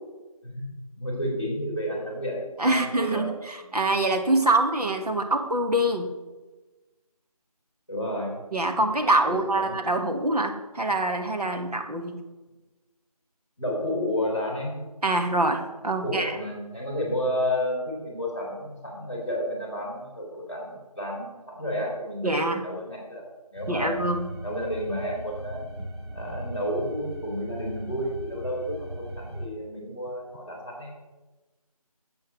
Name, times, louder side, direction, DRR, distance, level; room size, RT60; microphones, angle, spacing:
voice 1, 1.0-3.2 7.9-8.3 9.2-9.8 13.6-14.7 15.9-23.3 23.5-24.0 24.4-25.6 26.1-30.9, equal, 10° right, -11 dB, 2.4 m, -31 dB
voice 2, 2.6-6.1 8.5-12.2 15.0-16.4 22.2-22.6 23.7-24.2, right 2 dB, 80° right, 4 dB, 1.4 m, -25 dB
sound 1, 23.5-29.5, equal, 45° right, 1.8 m, -38 dB
7.8 x 7.7 x 6.9 m, 1.2 s
figure-of-eight pair, 180°, 20 cm